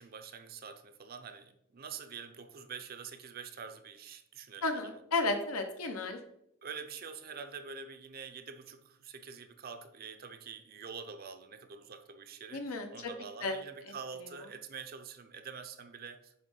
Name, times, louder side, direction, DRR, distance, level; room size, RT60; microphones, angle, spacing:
voice 1, 0.0-5.0 6.6-16.4, right 6 dB, 45° right, 0.5 m, -46 dB
voice 2, 4.6-6.2 12.5-13.1 13.4-13.6, left 3 dB, 85° left, 0.8 m, -33 dB
7.2 x 3.1 x 5.3 m
head